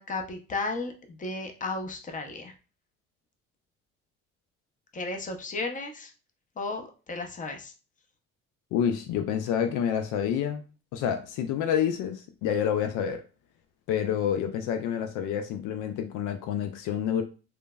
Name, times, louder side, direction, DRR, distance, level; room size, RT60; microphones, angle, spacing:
voice 1, 0.0-2.5 4.9-6.1 6.6-7.7, left 3 dB, 25° left, 0.6 m, -34 dB
voice 2, 8.7-10.6 10.9-13.2 13.9-17.2, left 8 dB, 70° left, 0.5 m, -28 dB
3.1 x 2.0 x 2.2 m
supercardioid pair, 65°, 32 cm